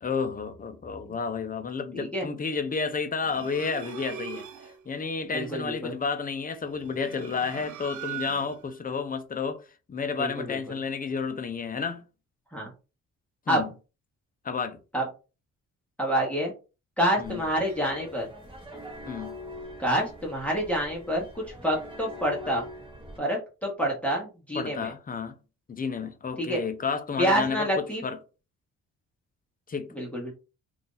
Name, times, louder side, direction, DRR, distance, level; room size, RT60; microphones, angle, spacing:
voice 1, 0.0-4.4 4.9-9.6 9.9-12.0 13.5-13.7 14.4-14.8 17.2-17.4 19.1-19.4 24.5-25.4 25.7-28.2 29.7-29.9, left 5 dB, 25° left, 0.6 m, -31 dB
voice 2, 1.9-2.3 5.3-5.9 10.2-10.6 12.5-12.7 13.5-13.6 14.9-15.0 16.0-16.5 17.0-18.3 19.8-22.6 23.2-24.9 26.4-26.6 27.2-28.0 30.0-30.3, equal, 5° left, 1.1 m, -27 dB
sound 1, 3.2-4.8 6.7-8.7, right 9 dB, 60° right, 0.6 m, -40 dB
sound 2, 17.2-23.2, left 1 dB, 15° right, 1.2 m, -43 dB
2.6 x 2.6 x 3.8 m
cardioid pair, 90°, 33 cm